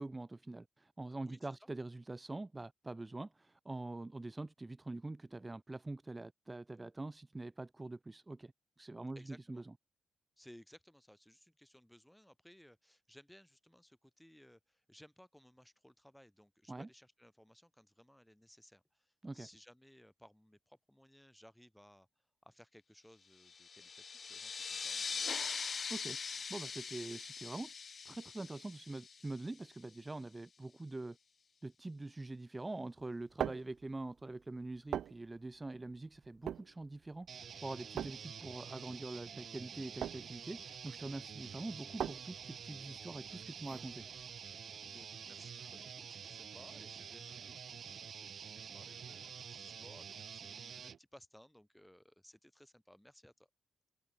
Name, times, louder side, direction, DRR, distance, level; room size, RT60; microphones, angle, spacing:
voice 1, 0.0-8.5 8.8-9.7 16.7-16.9 19.2-19.5 25.9-27.7 28.0-31.2 31.6-44.1, right 2 dB, 20° right, 2.7 m, -45 dB
voice 2, 1.2-1.6 9.2-9.7 10.4-22.1 22.4-25.5 44.8-53.5, equal, 5° left, 7.5 m, -61 dB
sound 1, 23.5-29.7, left 5 dB, 45° left, 0.4 m, -42 dB
sound 2, 33.0-44.5, right 10 dB, 80° right, 0.6 m, -44 dB
sound 3, 37.3-51.0, right 7 dB, 60° right, 2.6 m, -48 dB
open air
cardioid pair, 95°, 0 cm